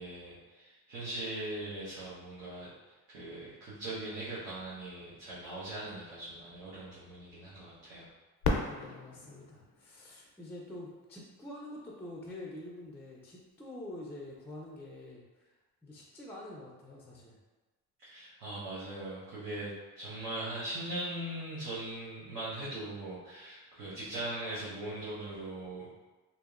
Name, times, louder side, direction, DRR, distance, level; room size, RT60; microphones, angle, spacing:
voice 1, 0.0-8.1 18.0-25.9, right 1 dB, 90° right, -10 dB, 0.8 m, -40 dB
Fireworks, 8.4-11.2 11.9-12.0 12.6-13.1 15.0-15.1, left 3 dB, 80° left, 0.5 m, -36 dB
voice 2, 8.5-15.5 15.8-17.4, left 1 dB, 5° left, -3 dB, 0.3 m, -46 dB
2.7 x 2.0 x 2.3 m, 1.2 s
supercardioid pair, 75°, 36 cm